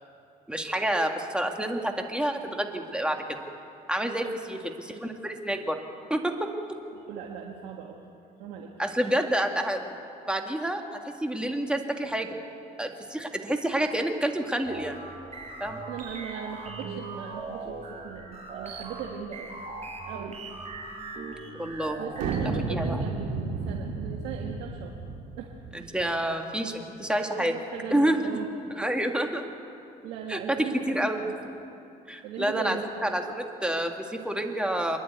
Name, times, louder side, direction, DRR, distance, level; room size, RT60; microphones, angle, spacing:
voice 1, 0.5-3.4 3.9-5.8 6.1-6.5 8.8-9.9 10.3-12.4 12.8-15.0 15.6-15.8 21.5-22.1 22.5-23.1 25.7-27.5 27.9-28.3 28.8-29.4 30.3-31.2 32.1-35.0, right 1 dB, 5° right, 3 dB, 1.9 m, -28 dB
voice 2, 4.2-4.6 6.9-8.0 8.4-8.7 15.9-19.6 20.0-20.4 22.0-24.9 25.4-25.6 27.4-28.5 30.0-31.4 32.2-33.1, right 7 dB, 90° right, 0 dB, 1.7 m, -39 dB
sound 1, 14.6-22.4, right 3 dB, 40° right, 5.8 m, -39 dB
sound 2, 22.1-25.8, right 3 dB, 75° right, 2.8 m, -32 dB
26.5 x 11.0 x 9.4 m, 2.8 s
cardioid pair, 110°, 17 cm